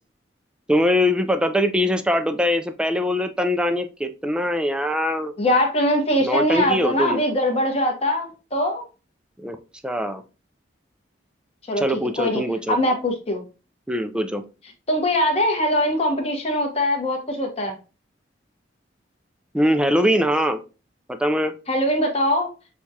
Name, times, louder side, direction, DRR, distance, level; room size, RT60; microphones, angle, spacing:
voice 1, 0.7-5.3 6.2-7.2 9.4-9.6 9.8-10.2 11.7-12.8 13.9-14.4 19.5-20.6 21.1-21.5, equal, 5° right, 8 dB, 0.3 m, -22 dB
voice 2, 5.4-8.8 11.7-12.4 12.7-13.4 14.9-17.8 21.7-22.5, equal, 35° left, 2 dB, 1.1 m, -22 dB
6.3 x 2.4 x 2.7 m, 0.32 s
head